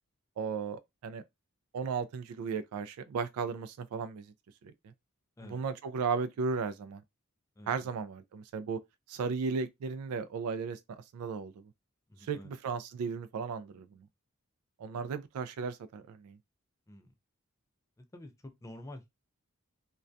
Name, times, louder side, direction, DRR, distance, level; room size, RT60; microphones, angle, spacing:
voice 1, 0.4-1.2 1.7-4.3 4.8-4.9 5.5-7.0 7.7-8.8 9.1-10.8 11.1-11.5 12.2-14.0 14.8-16.4, right 5 dB, 85° right, 0.3 m, -35 dB
voice 2, 7.6-7.9 12.1-12.5 16.9-17.1 18.0-19.2, left 1 dB, 15° left, 0.4 m, -49 dB
2.2 x 2.2 x 2.5 m
head